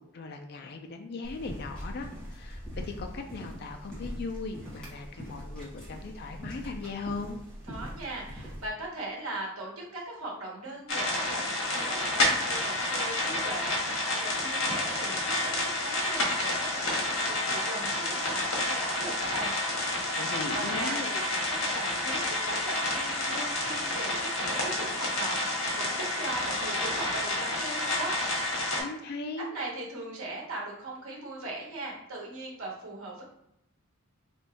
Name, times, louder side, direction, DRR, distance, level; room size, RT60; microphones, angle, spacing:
voice 1, 0.0-7.4 20.1-21.1 28.8-29.5, left 3 dB, 50° left, 4 dB, 0.4 m, -38 dB
sound 1, 1.2-8.7, equal, 5° left, 1.1 m, -42 dB
voice 2, 7.7-19.5 20.5-28.2 29.5-33.2, right 2 dB, 75° right, -2 dB, 1.1 m, -39 dB
sound 2, 10.9-28.8, left 1 dB, 85° left, 1.3 m, -29 dB
3.5 x 2.6 x 4.0 m, 0.79 s
head